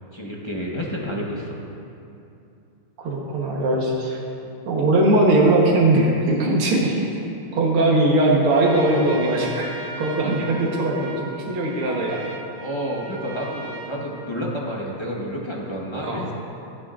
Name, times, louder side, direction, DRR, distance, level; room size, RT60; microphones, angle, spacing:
voice 1, 0.1-1.6 8.7-9.1 12.6-16.3, equal, 20° left, -4 dB, 0.8 m, -30 dB
voice 2, 3.0-4.2 4.7-7.2 7.5-9.7 10.0-12.2 16.0-16.3, right 2 dB, 90° right, -2 dB, 2.1 m, -20 dB
Trumpet, 8.4-14.9, right 3 dB, 65° right, 1.5 m, -38 dB
16.0 x 11.0 x 2.5 m, 2.7 s
omnidirectional pair, 2.3 m